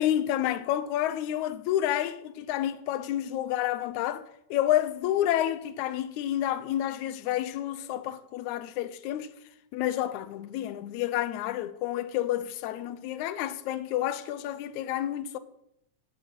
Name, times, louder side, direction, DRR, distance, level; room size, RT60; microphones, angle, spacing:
voice 1, 0.0-4.2 4.5-9.3 9.7-15.4, left 12 dB, 85° left, 2.0 m, -29 dB
10.5 x 7.0 x 6.0 m
omnidirectional pair, 3.3 m